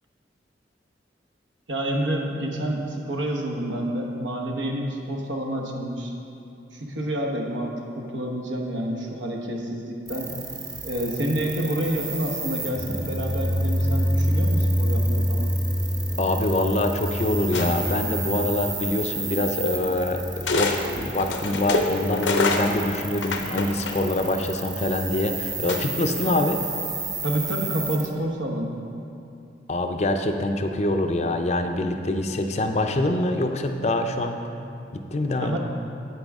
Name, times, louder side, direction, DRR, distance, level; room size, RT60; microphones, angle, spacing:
voice 1, 1.7-6.1 6.7-10.3 10.8-15.5 27.2-28.7 35.4-35.6, right 1 dB, 85° right, 1 dB, 1.1 m, -28 dB
sound 1, 10.1-28.1, right 4 dB, 20° right, 0.8 m, -34 dB
sound 2, 12.6-21.5, equal, 45° right, 1.1 m, -27 dB
voice 2, 16.2-26.6 29.7-34.4 34.9-35.6, left 2 dB, 35° left, 5 dB, 0.5 m, -25 dB
sound 3, 17.5-18.0 19.2-19.3 20.4-20.8 21.2-24.3 25.7-26.1, left 3 dB, 85° left, 0.8 m, -26 dB
9.1 x 8.6 x 3.6 m, 2.7 s
head